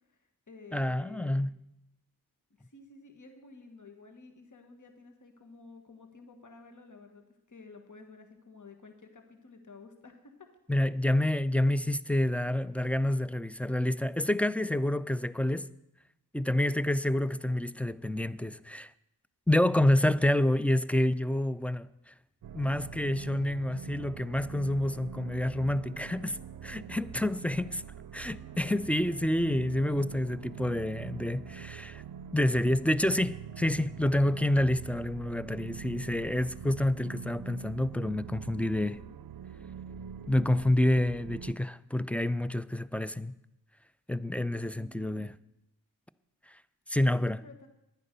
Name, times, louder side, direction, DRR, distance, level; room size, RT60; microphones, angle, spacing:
voice 1, 0.1-1.5 2.6-10.5 44.7-45.2 47.2-47.7, left 4 dB, 50° left, 1.5 m, -52 dB
voice 2, 0.7-1.6 10.7-15.7 16.3-18.9 19.5-22.1 22.5-26.4 26.6-27.8 28.1-32.0 32.3-39.0 40.3-43.3 44.1-45.3 46.5-46.6 46.9-47.4, left 1 dB, 5° left, 0.4 m, -28 dB
sound 1, 22.4-41.5, right 8 dB, 60° right, 0.6 m, -44 dB
10.5 x 9.6 x 6.7 m
cardioid pair, 55°, 39 cm